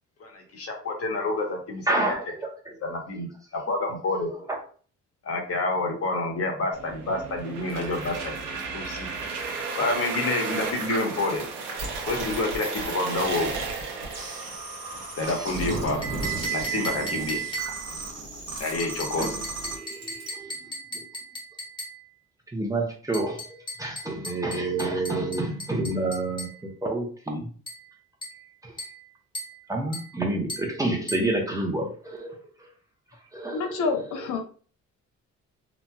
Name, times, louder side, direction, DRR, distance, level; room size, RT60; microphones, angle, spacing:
voice 1, 0.2-2.2 2.8-3.3 3.5-4.3 5.2-9.1 9.5-11.4 12.1-13.5 15.2-16.0 16.5-17.4 18.6-19.4, left 2 dB, 50° left, 2 dB, 1.0 m, -28 dB
voice 2, 1.9-2.5 4.5-4.6 19.1-19.4 19.7-20.5 20.9-21.0 22.5-26.5 26.8-27.5 28.6-28.7 29.7-32.4 33.3-33.8 34.2-34.4, right 2 dB, 10° right, 0 dB, 0.8 m, -29 dB
sound 1, 6.7-16.5, right 4 dB, 85° right, 0.7 m, -34 dB
sound 2, 7.7-20.3, right 2 dB, 55° right, 1.2 m, -37 dB
sound 3, 16.0-18.0 18.8-22.0 23.1-26.6 27.7-27.9 28.2-28.5 28.8-29.1 29.3-29.6 29.9-30.2 30.5-30.7 31.1-31.3, right 3 dB, 15° left, 1.2 m, -36 dB
voice 3, 33.5-34.4, left 4 dB, 85° left, 4 dB, 0.6 m, -27 dB
2.9 x 2.6 x 2.2 m, 0.41 s
cardioid pair, 90°, 30 cm